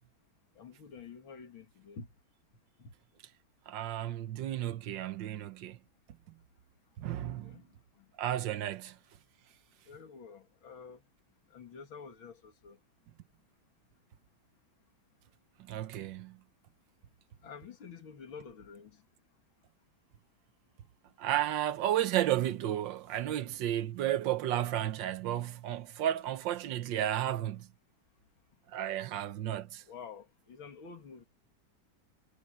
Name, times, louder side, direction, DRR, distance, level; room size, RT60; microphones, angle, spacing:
voice 1, 0.6-2.1 2.8-2.9 7.4-7.6 8.0-8.1 9.9-11.0 11.5-12.8 17.4-19.0 29.9-31.2, left 6 dB, 80° left, 3.1 m, -49 dB
voice 2, 3.7-5.8 7.0-7.6 8.2-8.9 15.7-16.4 21.2-27.7 28.7-29.8, right 12 dB, 70° right, 1.5 m, -33 dB
omnidirectional pair, 2.2 m